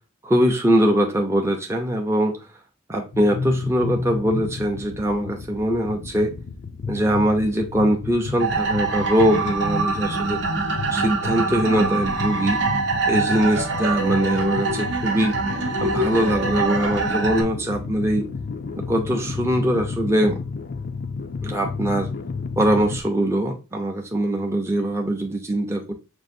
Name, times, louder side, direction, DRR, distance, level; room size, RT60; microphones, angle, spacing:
voice 1, 0.2-2.4 2.9-6.3 6.9-10.4 10.9-12.6 13.1-15.4 15.8-18.3 18.7-20.4 21.4-22.1 22.6-25.9, right 1 dB, 15° right, 0.5 m, -22 dB
sound 1, 3.1-23.0, left 4 dB, 45° left, 0.4 m, -32 dB
sound 2, 8.4-17.4, right 3 dB, 60° right, 0.7 m, -24 dB
6.1 x 2.5 x 2.6 m
head